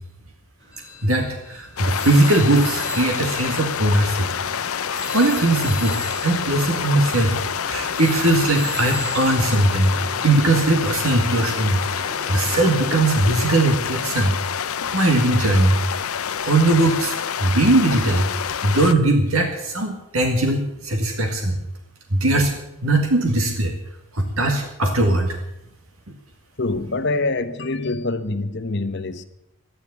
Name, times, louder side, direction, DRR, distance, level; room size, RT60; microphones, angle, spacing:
sound 1, 0.6-12.9, right 1 dB, 55° right, 5.4 m, -41 dB
sound 2, 0.7-10.3, equal, 5° right, 1.1 m, -36 dB
voice 1, 1.0-4.3 5.1-9.9 10.2-11.8 12.3-14.3 14.9-15.8 16.4-21.6 22.1-22.5 22.8-23.7 24.1-25.4, right 2 dB, 75° right, 1.9 m, -20 dB
sound 3, 1.8-18.9, left 8 dB, 80° left, 0.7 m, -27 dB
voice 2, 26.6-29.2, left 2 dB, 50° left, 1.0 m, -25 dB
12.5 x 10.0 x 9.7 m
head